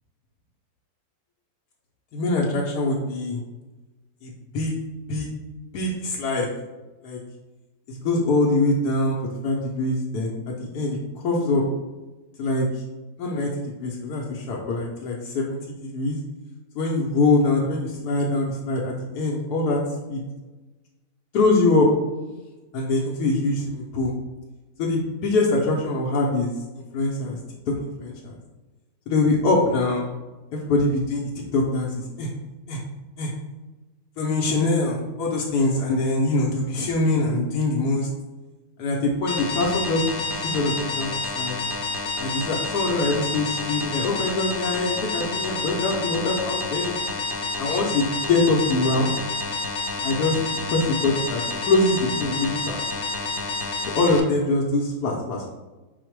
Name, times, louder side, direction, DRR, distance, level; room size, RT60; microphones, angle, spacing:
voice 1, 2.1-3.4 4.2-4.7 5.1-5.3 5.7-6.5 7.0-7.2 7.9-9.2 9.4-11.6 12.4-12.7 13.2-13.5 13.8-16.2 16.7-19.8 20.1-20.2 21.3-21.9 22.7-24.1 24.8-26.5 26.9-27.4 28.0-28.3 29.1-30.1 30.5-32.3 32.7-32.8 33.2-33.3 34.2-38.1 38.8-40.0 40.3-41.6 42.2-47.0 47.6-49.1 50.0-50.4 50.7-52.8 53.9-55.5, left 2 dB, 90° left, -3 dB, 1.2 m, -23 dB
sound 1, 39.3-54.2, left 3 dB, 65° left, 0.8 m, -29 dB
5.6 x 2.1 x 4.5 m, 1.1 s
omnidirectional pair, 1.6 m